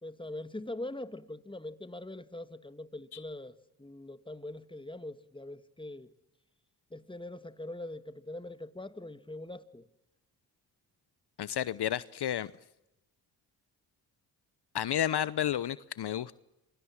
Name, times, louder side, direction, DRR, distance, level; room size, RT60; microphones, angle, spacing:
voice 1, 0.0-6.1 6.9-9.9, left 1 dB, 10° left, 1.9 m, -42 dB
voice 2, 11.4-12.5 14.7-16.4, left 10 dB, 60° left, 0.9 m, -31 dB
28.0 x 23.0 x 7.3 m
supercardioid pair, 45°, 46 cm